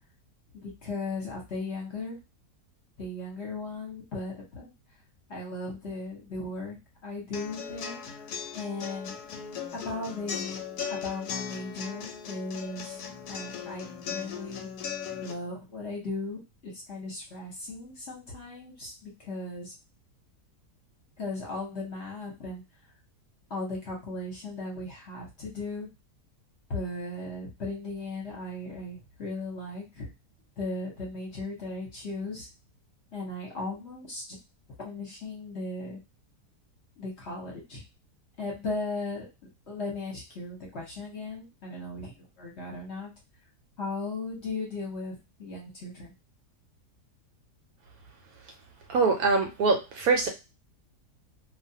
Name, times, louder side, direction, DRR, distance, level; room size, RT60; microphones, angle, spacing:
voice 1, 0.6-2.2 3.0-4.7 5.3-6.8 7.0-8.0 8.5-9.2 9.7-10.6 10.9-13.0 13.3-14.7 15.2-19.7 21.2-22.6 23.5-25.9 26.7-30.1 30.6-32.5 33.1-34.4 34.8-36.0 37.0-37.8 38.4-43.1 43.8-46.1, left 2 dB, 50° left, -2 dB, 1.0 m, -37 dB
sound 1, 7.3-15.3, left 7 dB, 75° left, 1.1 m, -38 dB
voice 2, 48.9-50.3, right 4 dB, 70° right, 4 dB, 1.0 m, -23 dB
2.5 x 2.3 x 2.7 m, 0.26 s
omnidirectional pair, 1.7 m